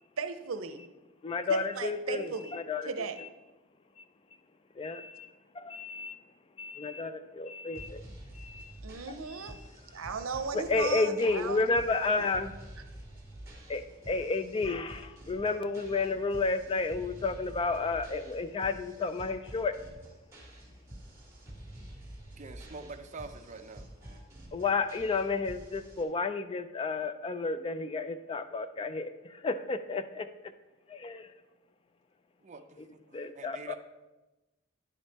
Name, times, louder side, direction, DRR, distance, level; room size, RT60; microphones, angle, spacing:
voice 1, 0.2-0.9 1.5-2.5 2.8-3.2 8.8-11.7 12.2-12.3, right 5 dB, 90° right, 9 dB, 0.6 m, -36 dB
voice 2, 1.2-2.9 3.2-3.3 4.0-4.1 4.8-6.2 6.6-8.0 8.3-8.8 9.1-9.2 10.5-12.5 13.7-19.7 24.5-30.3 30.9-31.3 32.8-32.9 33.1-33.8, left 3 dB, 25° left, 11 dB, 0.3 m, -31 dB
sound 1, 7.7-26.0, right 1 dB, 15° right, 1.7 m, -49 dB
voice 3, 22.4-23.9 32.4-33.8, right 3 dB, 35° right, 6 dB, 0.5 m, -46 dB
9.8 x 5.3 x 4.1 m, 1.1 s
head